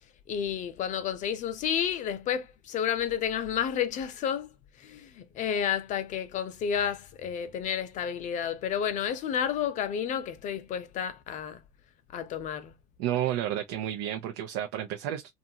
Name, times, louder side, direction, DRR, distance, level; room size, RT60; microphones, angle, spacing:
voice 1, 0.3-4.5 4.8-11.6 12.1-12.7, left 8 dB, 50° left, 0.7 m, -31 dB
voice 2, 13.0-15.3, right 11 dB, 75° right, 0.5 m, -31 dB
2.6 x 2.5 x 2.7 m
supercardioid pair, 100°, 16 cm